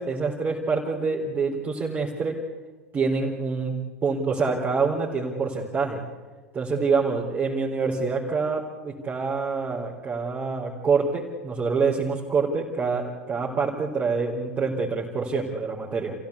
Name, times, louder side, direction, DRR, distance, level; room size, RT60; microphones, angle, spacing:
voice 1, 0.0-2.3 2.9-3.7 4.0-6.0 6.5-16.1, right 4 dB, 25° right, -4 dB, 4.1 m, -26 dB
28.5 x 16.0 x 8.4 m, 1.3 s
figure-of-eight pair, 85°, 8 cm